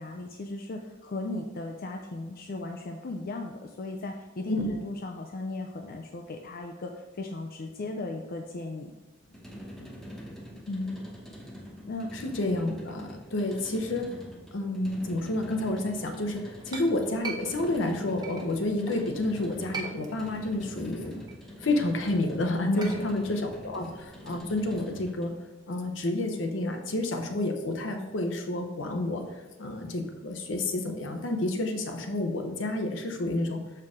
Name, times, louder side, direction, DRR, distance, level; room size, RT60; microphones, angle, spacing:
voice 1, 0.0-8.9 10.7-11.0 11.8-12.1 22.6-23.1, left 2 dB, 50° left, 3 dB, 0.4 m, -36 dB
sound 1, 9.2-25.4, equal, ahead, 1.0 m, -44 dB
voice 2, 12.1-14.1 14.5-21.2 21.6-25.3 25.7-33.6, left 2 dB, 75° left, 4 dB, 0.8 m, -30 dB
Chink clink, 16.3-19.1 19.5-20.5 20.9-25.0, right 3 dB, 20° right, 0.7 m, -41 dB
6.3 x 4.6 x 3.6 m, 1.1 s
head